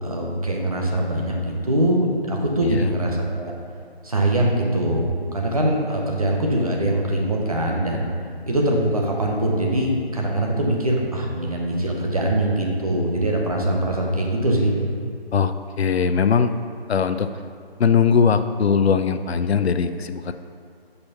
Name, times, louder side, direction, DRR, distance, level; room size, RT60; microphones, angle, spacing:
voice 1, 0.0-3.5 4.0-8.1 8.5-14.7, right 1 dB, 35° right, -1 dB, 0.8 m, -22 dB
voice 2, 15.3-16.5 16.9-17.3 17.8-20.3, left 6 dB, 85° left, 10 dB, 0.5 m, -20 dB
5.5 x 4.0 x 5.7 m, 2.2 s
figure-of-eight pair, 170°, 31 cm